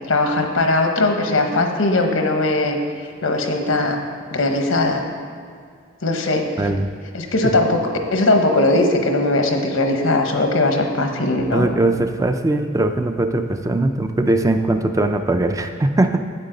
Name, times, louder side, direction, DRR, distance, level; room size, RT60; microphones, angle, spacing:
voice 1, 0.1-2.8 3.2-4.0 4.3-5.0 6.0-6.7 7.1-7.8 8.1-11.7, left 2 dB, 85° left, 4 dB, 1.0 m, -19 dB
voice 2, 6.6-6.9 7.5-7.6 11.5-16.2, right 2 dB, 15° right, 7 dB, 0.3 m, -20 dB
9.0 x 8.2 x 3.9 m, 2.2 s
head